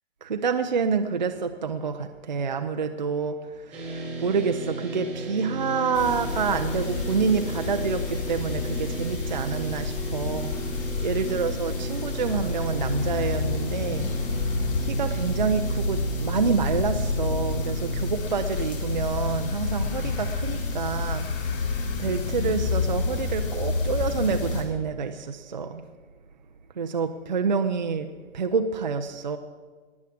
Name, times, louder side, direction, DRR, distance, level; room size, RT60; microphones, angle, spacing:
voice 1, 0.2-10.6 11.0-14.1 14.8-21.3 22.0-25.8 26.8-29.4, right 5 dB, 35° right, 6 dB, 0.6 m, -28 dB
sound 1, 3.7-18.1, right 3 dB, 5° right, 1.1 m, -34 dB
sound 2, 5.9-24.6, left 4 dB, 45° left, 4.3 m, -29 dB
20.0 x 7.3 x 8.4 m, 1.4 s
hypercardioid pair, 175°, 38 cm